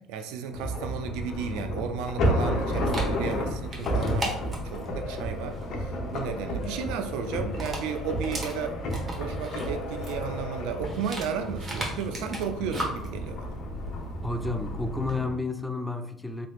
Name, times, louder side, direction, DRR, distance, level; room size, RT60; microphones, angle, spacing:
voice 1, 0.1-8.8 9.2-13.6, right 7 dB, 85° right, 0.3 m, -34 dB
sound 1, 0.5-15.4, equal, 65° left, 0.7 m, -32 dB
Dog, 2.4-15.2, right 1 dB, 30° right, 1.0 m, -39 dB
voice 2, 14.2-16.5, left 2 dB, 5° left, 0.3 m, -31 dB
3.3 x 2.9 x 2.3 m
supercardioid pair, 90°, 0 cm